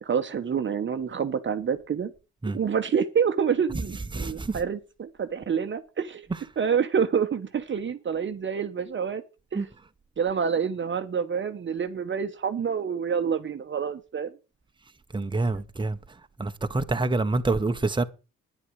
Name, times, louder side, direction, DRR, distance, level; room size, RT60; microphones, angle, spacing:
voice 1, 0.0-2.1 2.5-6.3 6.6-9.2 9.5-9.7 10.2-14.3, right 7 dB, 40° right, 1.1 m, -27 dB
voice 2, 4.1-4.5 9.5-9.6 15.1-16.0 16.4-18.0, right 3 dB, 15° right, 1.1 m, -26 dB
10.0 x 9.6 x 6.4 m
cardioid pair, 90°, 30 cm